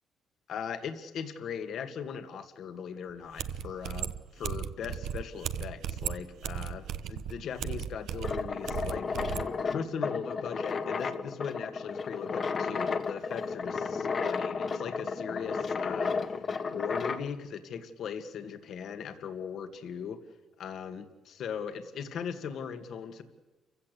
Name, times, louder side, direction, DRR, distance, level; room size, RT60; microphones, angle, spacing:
voice 1, 0.5-16.4 16.7-20.2 20.6-23.2, left 7 dB, 60° left, 8 dB, 2.3 m, -39 dB
sound 1, 3.1-3.2 3.4-9.5, right 9 dB, 70° right, 1.0 m, -36 dB
sound 2, 8.2-17.3, left 5 dB, 35° left, 1.6 m, -33 dB
29.5 x 16.5 x 8.3 m, 1.1 s
cardioid pair, 140°, 0 cm